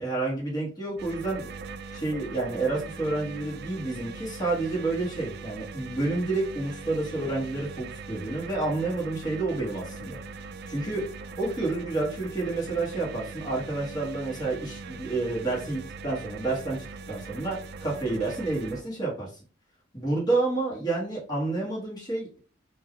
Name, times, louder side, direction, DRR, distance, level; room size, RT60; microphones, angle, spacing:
voice 1, 0.0-1.5 1.9-10.2 10.7-16.8 17.1-19.3 19.9-22.4, right 2 dB, 20° left, -5 dB, 1.3 m, -29 dB
sound 1, 1.0-18.8, right 4 dB, 50° right, 0.3 m, -41 dB
2.6 x 2.3 x 3.6 m, 0.37 s
head